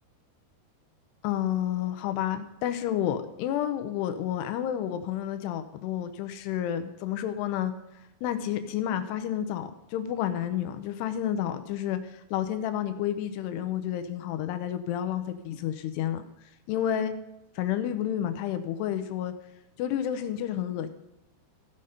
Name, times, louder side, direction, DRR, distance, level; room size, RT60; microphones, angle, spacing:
voice 1, 1.2-7.7 8.2-16.2 16.7-17.1 17.6-19.3 19.8-20.9, left 10 dB, 90° left, 9 dB, 2.8 m, -30 dB
16.0 x 5.6 x 5.1 m, 0.91 s
omnidirectional pair, 4.7 m